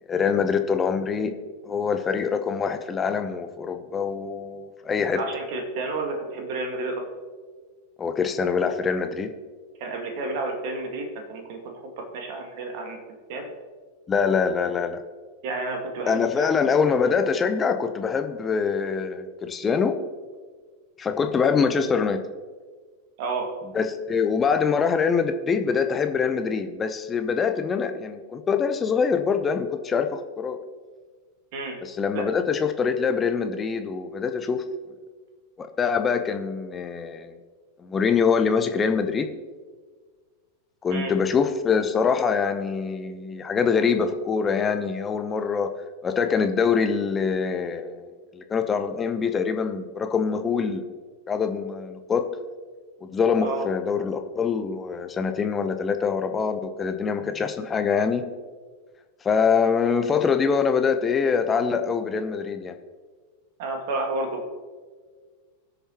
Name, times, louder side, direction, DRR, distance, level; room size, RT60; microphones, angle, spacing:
voice 1, 0.1-1.4 1.6-5.2 8.0-9.3 14.1-15.0 16.1-20.0 21.0-22.2 23.7-30.6 31.8-34.6 35.6-37.4 37.8-39.3 40.8-45.7 46.0-50.9 51.3-52.3 53.0-58.3 59.2-62.8, left 6 dB, 20° left, 7 dB, 0.8 m, -24 dB
voice 2, 5.1-7.0 9.8-13.0 13.3-13.5 15.4-16.5 23.2-23.5 31.5-31.8 32.1-32.3 40.9-41.1 53.4-53.7 63.6-64.5, right 2 dB, 50° right, 3 dB, 1.8 m, -31 dB
20.0 x 6.7 x 3.0 m, 1.5 s
figure-of-eight pair, 90°, 0 cm